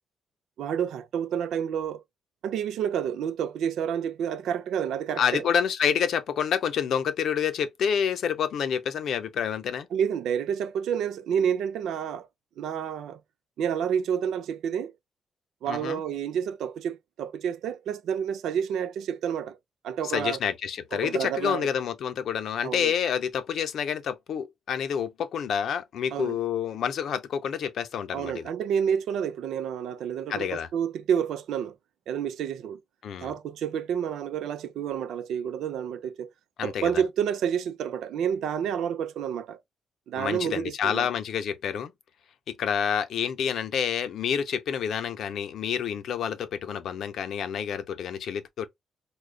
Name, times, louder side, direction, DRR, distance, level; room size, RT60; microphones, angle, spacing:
voice 1, 0.6-2.0 2.4-5.4 9.9-12.3 12.6-13.2 13.6-14.9 15.6-19.6 19.8-20.4 20.9-21.7 22.6-22.9 26.1-26.4 28.1-31.7 32.1-32.8 33.2-36.3 36.6-39.6 40.1-41.1, right 8 dB, 85° right, 0.5 m, -29 dB
voice 2, 5.2-9.9 15.7-16.0 20.0-28.5 30.3-30.7 33.0-33.3 36.6-36.9 40.2-41.9 42.5-48.7, left 8 dB, 60° left, 0.5 m, -28 dB
4.9 x 2.2 x 2.2 m
cardioid pair, 175°, 0 cm